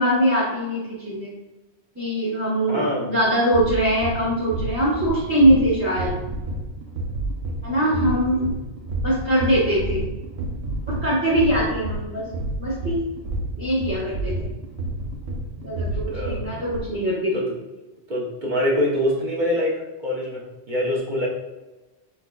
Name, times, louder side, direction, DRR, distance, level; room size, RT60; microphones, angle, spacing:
voice 1, 0.0-1.3 1.9-6.1 7.6-8.5 9.0-10.1 10.9-12.2 12.6-13.0 13.6-14.5 15.6-17.5, equal, 10° right, -10 dB, 1.1 m, -22 dB
voice 2, 2.7-3.1 7.8-8.4 16.1-16.5 17.3-17.5 18.1-21.3, equal, 50° right, -4 dB, 1.0 m, -25 dB
sound 1, 3.2-16.8, right 1 dB, 90° right, 0.9 m, -30 dB
4.6 x 3.9 x 2.3 m, 1.1 s
omnidirectional pair, 1.1 m